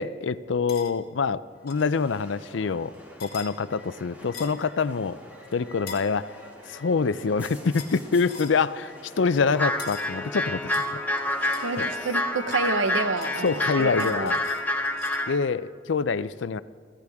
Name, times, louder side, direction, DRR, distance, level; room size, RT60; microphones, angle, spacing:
voice 1, 0.0-2.9 3.2-5.2 5.5-11.0 11.8-11.9 13.4-14.4 15.3-16.6, left 5 dB, 70° left, 15 dB, 0.5 m, -26 dB
sound 1, 0.7-0.9 1.7-1.9 3.2-3.5 4.3-4.7 5.9-6.1 7.8-8.0 8.3-8.6 9.8-10.1 10.7-12.1 12.5-15.3, left 6 dB, 55° left, 1.8 m, -43 dB
sound 2, 1.5-14.8, equal, 10° right, 2.7 m, -46 dB
sound 3, 9.5-15.4, left 1 dB, 10° left, 0.9 m, -28 dB
voice 2, 11.6-14.3, right 3 dB, 80° right, 10 dB, 1.0 m, -29 dB
24.5 x 15.5 x 3.6 m, 2.1 s
head